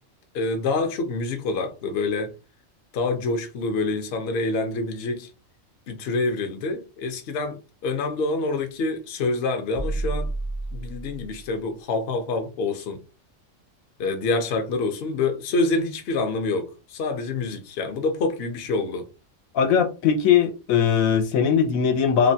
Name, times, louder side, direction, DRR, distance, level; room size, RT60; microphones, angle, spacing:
voice 1, 0.3-2.3 2.9-5.3 5.9-10.3 10.7-13.0 14.0-19.1, left 3 dB, 60° left, 0.7 m, -26 dB
sound 1, 9.7-11.6, right 2 dB, 50° right, 0.5 m, -30 dB
voice 2, 19.5-22.3, left 7 dB, 80° left, 1.0 m, -20 dB
3.1 x 2.1 x 2.7 m
omnidirectional pair, 1.4 m